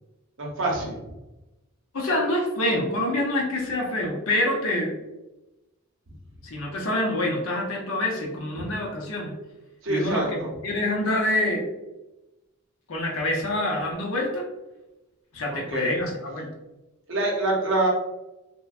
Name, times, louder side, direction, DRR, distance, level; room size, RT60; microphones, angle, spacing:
voice 1, 0.4-1.0 8.6-8.7 9.8-10.5 15.5-15.9 17.1-17.9, right 2 dB, 60° right, -2 dB, 0.7 m, -26 dB
voice 2, 1.9-5.0 6.4-9.3 9.9-11.6 12.9-14.4 15.3-16.5, left 1 dB, 70° left, 1 dB, 0.6 m, -26 dB
2.9 x 2.1 x 2.3 m, 1.0 s
head